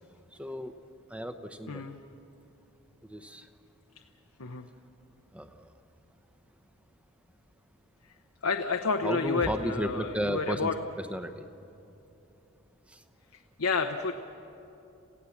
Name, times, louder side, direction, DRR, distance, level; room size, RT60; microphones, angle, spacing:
voice 1, 0.3-0.7 1.1-2.0 3.0-3.5 5.3-5.7 9.0-10.7 11.0-11.4 12.9-13.0, equal, 5° right, 9 dB, 0.9 m, -34 dB
voice 2, 1.7-2.0 4.4-4.7 8.4-10.7 13.6-14.1, left 4 dB, 85° left, 4 dB, 0.9 m, -30 dB
28.0 x 16.5 x 7.2 m, 3.0 s
head